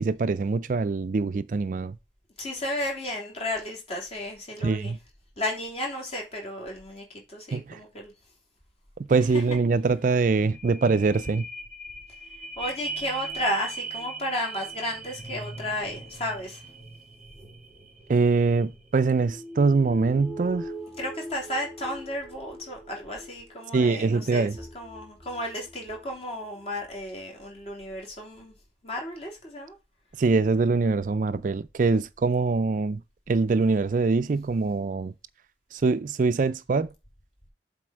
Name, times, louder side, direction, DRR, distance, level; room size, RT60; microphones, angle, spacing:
voice 1, 0.0-2.0 4.6-5.0 7.5-7.8 9.1-11.4 18.1-20.7 23.7-24.6 30.2-33.0 33.3-35.1 35.7-36.9, right 4 dB, 45° right, 0.4 m, -23 dB
voice 2, 2.4-4.9 5.4-8.1 12.6-16.6 21.0-28.5 28.8-29.7, left 1 dB, 35° left, 3.2 m, -33 dB
sound 1, 10.5-26.1 26.6-26.7, right 2 dB, ahead, 2.0 m, -41 dB
7.7 x 4.2 x 6.3 m
head